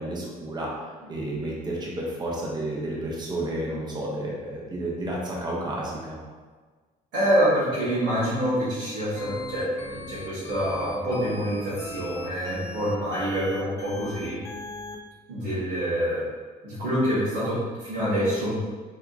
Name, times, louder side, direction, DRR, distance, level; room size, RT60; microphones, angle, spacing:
voice 1, 0.0-6.2, right 1 dB, 25° right, -3 dB, 0.8 m, -31 dB
voice 2, 7.1-14.4 15.3-16.2 16.6-18.6, equal, 90° right, -12 dB, 1.5 m, -26 dB
sound 1, 9.1-14.9, left 2 dB, 15° left, 0.4 m, -39 dB
4.6 x 2.8 x 2.5 m, 1.4 s
cardioid pair, 110°, 17 cm